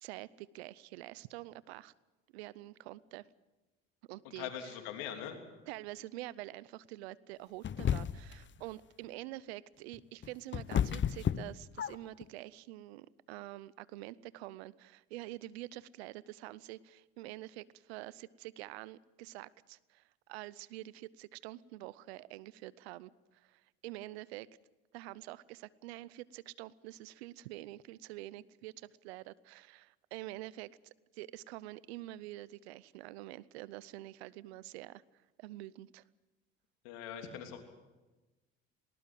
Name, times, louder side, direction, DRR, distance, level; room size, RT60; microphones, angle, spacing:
voice 1, 0.0-1.9 2.3-3.3 4.1-4.5 5.7-24.5 24.9-30.7 31.1-36.0, right 17 dB, 90° right, 21 dB, 0.7 m, -47 dB
voice 2, 4.3-5.4 36.8-37.6, left 9 dB, 85° left, 5 dB, 3.2 m, -42 dB
sound 1, 7.6-8.4 9.9-12.2, left 9 dB, 35° left, 0.8 m, -32 dB
20.0 x 19.0 x 7.6 m, 1.2 s
hypercardioid pair, 65°, 31 cm